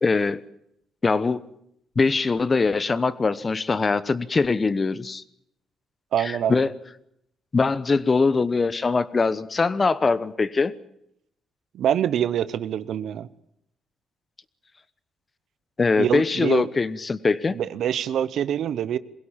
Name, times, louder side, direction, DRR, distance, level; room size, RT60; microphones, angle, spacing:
voice 1, 0.0-0.4 1.0-1.4 2.0-5.2 6.2-6.7 7.5-10.7 15.8-17.6, left 4 dB, 30° left, 16 dB, 1.0 m, -22 dB
voice 2, 6.1-6.6 11.7-13.3 16.0-16.7 17.5-19.0, right 10 dB, 70° right, 16 dB, 0.9 m, -25 dB
22.5 x 16.5 x 9.0 m, 0.76 s
cardioid pair, 90°, 0 cm